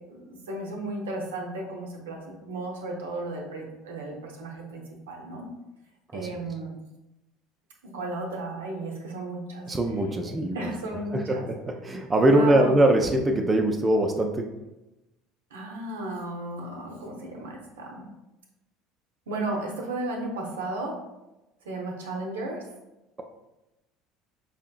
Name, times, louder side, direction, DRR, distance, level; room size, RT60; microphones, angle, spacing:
voice 1, 0.1-5.5 6.1-6.7 7.8-9.7 10.5-11.5 12.3-12.7 15.5-18.0 19.3-21.0 21.6-22.6, right 2 dB, 70° right, 1 dB, 0.6 m, -34 dB
voice 2, 9.7-10.7 11.1-14.5, right 1 dB, 20° right, 3 dB, 0.4 m, -22 dB
4.9 x 2.7 x 2.3 m, 0.97 s
figure-of-eight pair, 65°, 0 cm